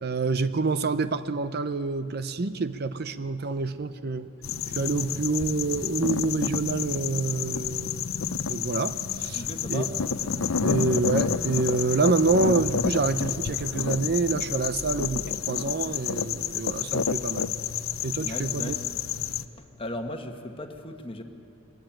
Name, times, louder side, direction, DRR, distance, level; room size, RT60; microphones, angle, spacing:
voice 1, 0.0-4.3 4.7-9.4 9.7-9.9 10.6-17.5 18.0-18.8, right 3 dB, 45° right, 12 dB, 0.6 m, -27 dB
sound 1, 4.4-19.4, left 6 dB, 70° left, 0.6 m, -30 dB
voice 2, 9.3-10.0 18.2-18.9 19.5-21.2, left 1 dB, 25° left, 5 dB, 1.3 m, -37 dB
Bowed string instrument, 9.4-12.8, right 2 dB, 65° right, 1.2 m, -47 dB
22.0 x 20.5 x 9.0 m, 2.7 s
head